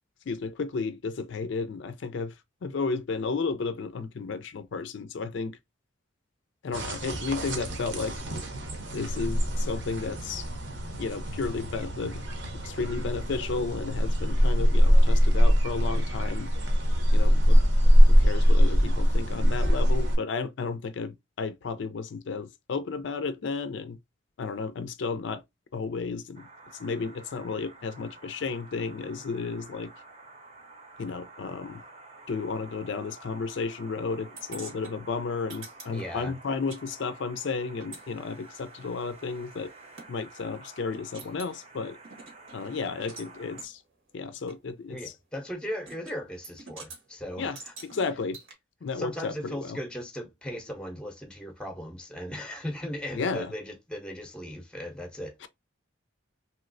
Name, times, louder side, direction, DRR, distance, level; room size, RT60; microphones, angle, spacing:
voice 1, 0.3-2.3 2.6-5.6 6.6-8.2 8.9-10.5 11.0-12.2 12.6-16.5 17.1-17.6 18.1-24.0 24.4-25.4 25.7-26.5 26.8-29.9 31.0-31.8 32.3-39.7 40.1-42.0 42.5-43.8 44.1-45.1 47.4-47.6 47.8-48.4 48.8-49.8 53.1-53.5 55.4-55.5, left 4 dB, 65° left, 0.4 m, -33 dB
sound 1, 6.7-20.2, equal, 60° right, 0.8 m, -23 dB
sound 2, 26.3-43.7, right 2 dB, 35° right, 0.7 m, -50 dB
sound 3, 34.4-36.8 37.1-40.1 40.5-40.6 40.9-41.6 42.0-43.3 43.6-43.7 44.5-44.6 45.9-46.2 46.4-47.0 47.5-48.5, right 4 dB, 85° right, 1.3 m, -47 dB
voice 2, 35.9-36.3 44.9-47.7 48.9-55.5, equal, 5° left, 0.7 m, -37 dB
3.1 x 2.9 x 2.4 m
head